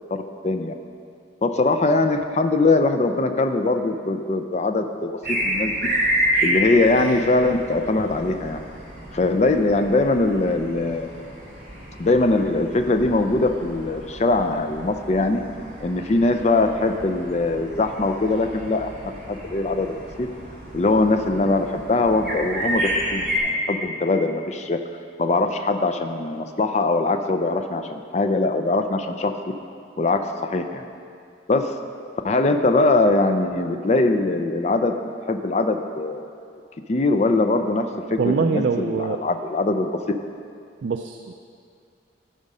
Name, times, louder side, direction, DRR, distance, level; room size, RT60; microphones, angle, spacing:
voice 1, 0.1-0.7 1.4-5.9 6.4-8.6 9.1-11.1 12.0-15.4 15.8-18.9 19.3-20.3 20.7-24.8 25.2-29.3 30.0-30.8 31.5-31.7 32.2-35.0 35.3-36.2 36.9-40.0, left 2 dB, 35° left, 6 dB, 0.4 m, -22 dB
sound 1, 5.2-23.4, equal, 45° right, 2.8 m, -30 dB
voice 2, 38.2-39.3 40.8-41.3, right 5 dB, 70° right, 6 dB, 0.4 m, -24 dB
14.5 x 5.1 x 5.4 m, 2.3 s
head